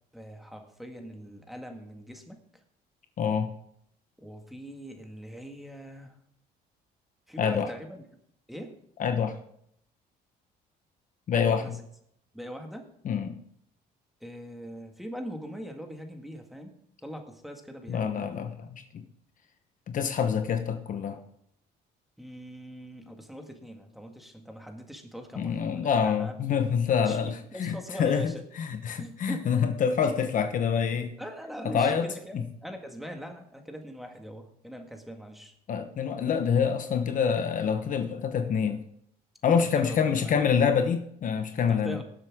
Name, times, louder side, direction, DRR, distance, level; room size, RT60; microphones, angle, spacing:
voice 1, 0.1-2.4 4.2-6.1 7.3-8.0 8.5-8.8 11.3-11.8 12.3-12.9 14.2-16.7 17.0-18.3 22.2-26.4 27.1-28.4 29.0-29.5 31.2-35.5 39.4-40.4 41.7-42.0, equal, ahead, 4 dB, 1.9 m, -42 dB
voice 2, 3.2-3.5 7.4-7.7 9.0-9.4 11.3-11.8 13.0-13.4 17.9-19.0 19.9-21.2 25.3-31.1 31.6-32.1 32.3-32.4 35.7-38.8 39.4-42.0, left 7 dB, 50° left, 7 dB, 1.1 m, -26 dB
18.5 x 7.7 x 3.7 m, 0.71 s
cardioid pair, 110°, 17 cm